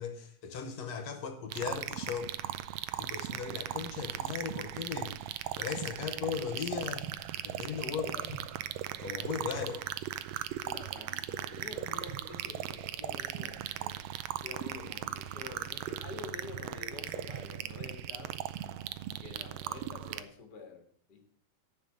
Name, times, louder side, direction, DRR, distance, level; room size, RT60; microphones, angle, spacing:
voice 1, 0.0-2.3 3.0-7.1 7.5-8.4 9.0-9.8, left 6 dB, 70° left, 8 dB, 2.0 m, -38 dB
sound 1, 1.5-20.2, right 12 dB, 80° right, 1.6 m, -38 dB
voice 2, 7.9-8.3 10.6-18.4 19.2-21.2, left 4 dB, 40° left, 3 dB, 1.8 m, -48 dB
10.5 x 5.5 x 7.8 m, 0.62 s
omnidirectional pair, 3.4 m